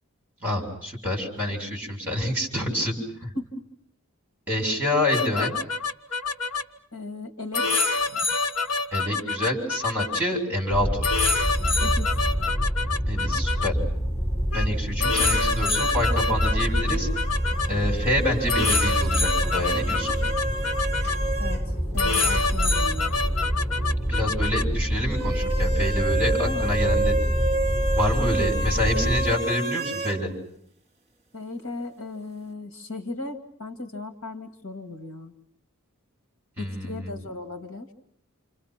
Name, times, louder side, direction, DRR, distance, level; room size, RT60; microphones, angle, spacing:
voice 1, 0.4-3.3 4.5-5.5 8.9-11.1 13.1-13.8 14.5-17.1 17.7-20.2 24.1-27.2 28.0-30.3 36.6-37.2, left 1 dB, 10° right, 0 dB, 7.2 m, -27 dB
sound 1, 5.1-6.6 7.5-10.2 11.0-13.7 14.5-14.7 15.0-17.7 18.5-21.2 22.0-24.6, left 4 dB, 85° left, 1.7 m, -26 dB
voice 2, 6.9-7.7 11.8-12.1 21.4-23.2 26.4-26.8 31.3-35.3 36.6-37.9, left 2 dB, 65° left, 6 dB, 2.5 m, -36 dB
sound 2, 10.7-29.3, equal, 10° left, 3.6 m, -26 dB
sound 3, 15.1-21.7 21.9-22.0 25.1-30.2, right 2 dB, 25° right, 2.5 m, -31 dB
29.0 x 28.0 x 6.1 m, 0.66 s
head